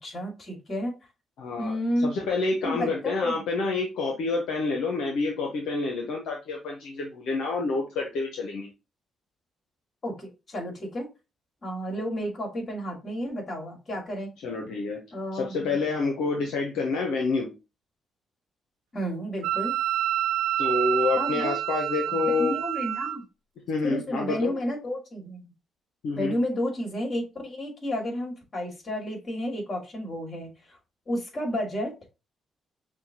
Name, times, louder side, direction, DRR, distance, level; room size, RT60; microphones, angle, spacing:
voice 1, 0.0-0.9 1.6-2.1 2.6-3.3 10.0-11.1 11.6-14.3 15.1-15.8 18.9-19.8 21.2-21.6 22.1-23.2 23.8-25.5 26.2-30.8 31.1-31.9, equal, 45° left, 2.5 m, -31 dB
voice 2, 1.4-1.7 2.0-8.7 14.4-15.0 15.3-17.5 20.6-22.5 23.7-24.5 26.0-26.3, left 3 dB, 75° left, 0.8 m, -28 dB
Wind instrument woodwind instrument, 19.4-23.2, right 12 dB, 85° right, 0.4 m, -28 dB
6.1 x 2.3 x 2.8 m
hypercardioid pair, 50°, 0 cm